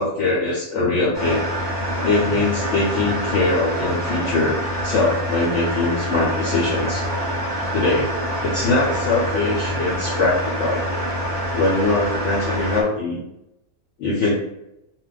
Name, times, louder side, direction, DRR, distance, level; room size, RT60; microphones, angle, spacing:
voice 1, 0.0-1.5 2.0-4.6 4.8-7.1 7.7-8.2 8.4-10.9 11.5-13.2 14.0-14.3, left 3 dB, 60° left, -5 dB, 0.8 m, -22 dB
sound 1, 1.1-12.8, equal, 25° right, 0.5 m, -26 dB
2.5 x 2.1 x 3.8 m, 0.85 s
omnidirectional pair, 1.7 m